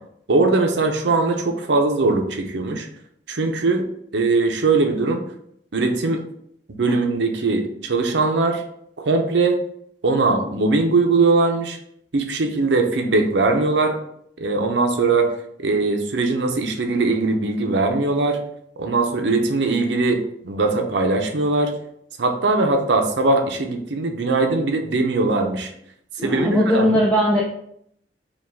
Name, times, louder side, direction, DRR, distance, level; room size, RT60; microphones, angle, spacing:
voice 1, 0.3-2.9 3.3-3.9 4.1-5.2 5.7-6.2 6.7-8.6 9.0-9.6 10.0-11.8 12.1-14.0 14.4-15.3 15.6-18.4 18.8-21.7 22.2-25.7 26.2-27.0, right 3 dB, 80° right, 4 dB, 0.6 m, -20 dB
voice 2, 26.2-27.4, equal, 5° left, -4 dB, 0.5 m, -19 dB
5.1 x 2.3 x 3.5 m, 0.71 s
head